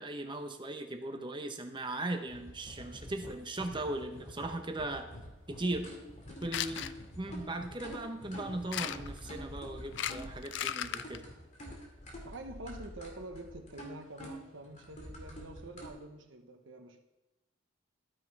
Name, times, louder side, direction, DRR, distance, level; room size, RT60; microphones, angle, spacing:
voice 1, 0.0-5.1 5.5-5.9 6.4-6.9 7.2-11.2, right 2 dB, 25° right, 0.9 m, -38 dB
sound 1, 2.3-15.9, equal, 40° left, 2.5 m, -47 dB
sound 2, 6.4-6.9 8.7-9.2 9.9-11.2, left 11 dB, 65° left, 0.4 m, -35 dB
voice 2, 12.2-17.0, right 2 dB, 75° right, 1.2 m, -47 dB
12.5 x 6.4 x 4.7 m
head